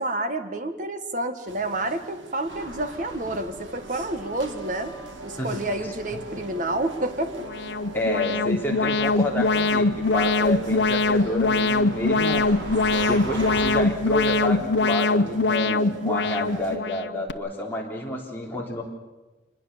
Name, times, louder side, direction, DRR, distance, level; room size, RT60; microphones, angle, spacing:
voice 1, 0.0-4.9 5.2-7.5 12.1-12.5 12.9-13.1, right 2 dB, 45° right, 8 dB, 1.6 m, -29 dB
sound 1, 1.5-16.8, right 1 dB, 85° right, 2.0 m, -41 dB
sound 2, 2.5-13.8, equal, 65° right, 6.7 m, -41 dB
Alarm, 7.4-17.3, left 3 dB, 70° left, 0.7 m, -23 dB
voice 2, 7.9-12.5 13.1-18.8, left 1 dB, 10° left, -2 dB, 3.6 m, -29 dB
26.0 x 21.0 x 6.9 m, 1.2 s
head